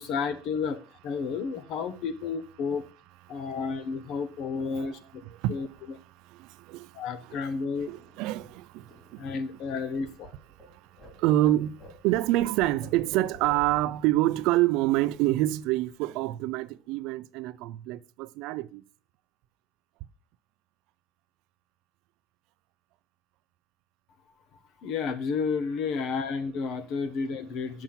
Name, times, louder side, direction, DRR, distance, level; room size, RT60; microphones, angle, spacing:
voice 1, 0.0-2.9 3.3-5.2 5.5-6.0 6.9-7.9 9.2-10.3 24.8-27.8, left 5 dB, 45° left, 1.0 m, -31 dB
voice 2, 6.2-7.0 7.9-9.3 11.1-18.8, right 15 dB, 60° right, 0.4 m, -27 dB
sound 1, 7.3-10.7 10.9-15.9 16.2-16.5 16.7-17.3, left 1 dB, 20° left, 3.6 m, -51 dB
6.9 x 5.9 x 7.3 m
cardioid pair, 175°, 0 cm